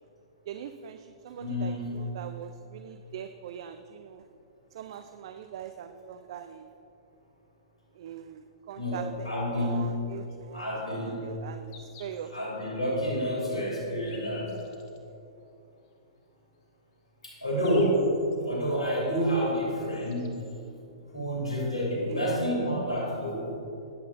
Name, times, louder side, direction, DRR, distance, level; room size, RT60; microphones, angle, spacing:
voice 1, 0.5-4.2 4.7-6.7 7.9-12.3 17.5-17.8 22.1-22.2, right 9 dB, 55° right, 8 dB, 0.5 m, -42 dB
voice 2, 1.3-1.9 8.8-9.8 10.5-11.3 12.3-14.5 17.2-18.1 18.4-20.3 21.1-23.5, equal, 85° left, -4 dB, 3.0 m, -29 dB
sound 1, 10.2-10.4 11.3-11.4 11.7-12.3 12.8-12.9 13.7-15.0 15.8-15.9 16.6-16.7 17.0-18.4 19.5-19.6 19.8-20.5 22.0-22.1 22.3-22.4 23.1-23.2, left 4 dB, 45° left, 1.8 m, -52 dB
21.0 x 8.5 x 2.6 m, 2.7 s
figure-of-eight pair, 110°, 3 cm